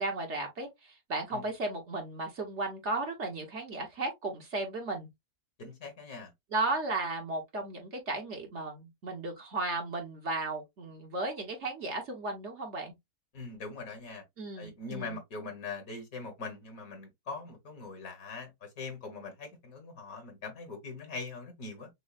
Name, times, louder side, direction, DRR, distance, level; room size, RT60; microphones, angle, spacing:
voice 1, 0.0-5.1 6.5-13.0 14.4-15.2, right 2 dB, 50° right, 1.3 m, -35 dB
voice 2, 5.6-6.3 13.3-14.2 14.6-21.9, left 3 dB, 65° left, 1.7 m, -42 dB
6.3 x 2.2 x 2.4 m
omnidirectional pair, 1.6 m